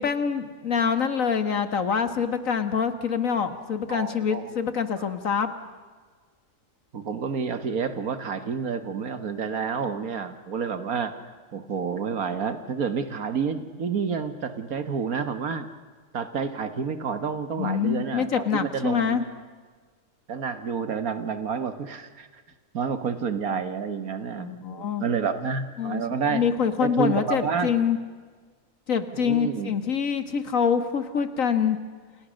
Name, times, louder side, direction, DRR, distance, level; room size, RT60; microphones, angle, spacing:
voice 1, 0.0-5.5 17.6-19.2 24.4-25.1 25.8-26.0 26.3-28.0 28.9-31.8, left 7 dB, 65° left, 10 dB, 2.1 m, -25 dB
voice 2, 3.9-4.5 5.0-5.1 6.9-15.7 16.1-19.2 20.3-22.3 22.7-26.4 26.8-27.7 29.1-29.7, right 6 dB, 85° right, 10 dB, 2.0 m, -29 dB
30.0 x 27.5 x 6.5 m, 1.5 s
omnidirectional pair, 1.5 m